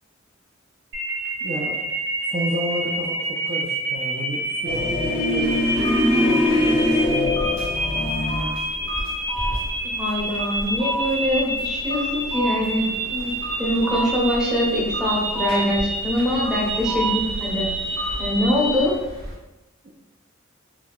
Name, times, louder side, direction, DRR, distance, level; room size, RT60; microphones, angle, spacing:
sound 1, 0.9-18.8, right 1 dB, 55° right, 0.9 m, -28 dB
voice 1, 1.4-1.8 2.3-7.4 19.8-19.9, right 1 dB, 35° right, -2 dB, 0.3 m, -31 dB
sound 2, 4.7-8.6, left 1 dB, 50° left, 0.6 m, -22 dB
sound 3, 5.4-19.3, equal, 90° right, 1.1 m, -33 dB
voice 2, 10.0-17.7 18.2-18.9, left 1 dB, 5° right, -5 dB, 0.6 m, -23 dB
2.3 x 2.2 x 3.5 m, 1.0 s
head